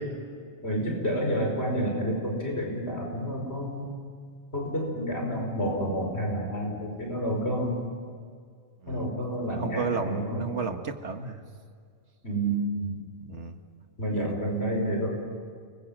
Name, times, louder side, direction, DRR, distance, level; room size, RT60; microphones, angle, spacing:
voice 1, 0.6-3.9 4.5-7.7 8.9-10.5 12.2-13.0 14.0-15.1, equal, 70° left, 0 dB, 5.8 m, -29 dB
voice 2, 9.5-11.4 13.2-13.6 14.1-14.3, right 5 dB, 80° right, 6 dB, 1.9 m, -33 dB
29.5 x 21.5 x 7.6 m, 2.1 s
omnidirectional pair, 1.2 m